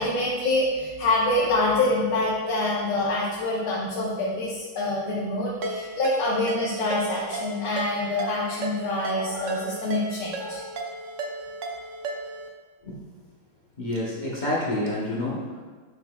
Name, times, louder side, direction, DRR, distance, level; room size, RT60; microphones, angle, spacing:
voice 1, 0.0-10.7, left 2 dB, 85° left, -5 dB, 1.8 m, -26 dB
Ringtone, 5.6-12.5, right 2 dB, 80° right, 0.7 m, -35 dB
voice 2, 13.8-15.6, left 1 dB, 45° left, -6 dB, 0.6 m, -28 dB
7.5 x 5.8 x 2.3 m, 1.5 s
omnidirectional pair, 2.3 m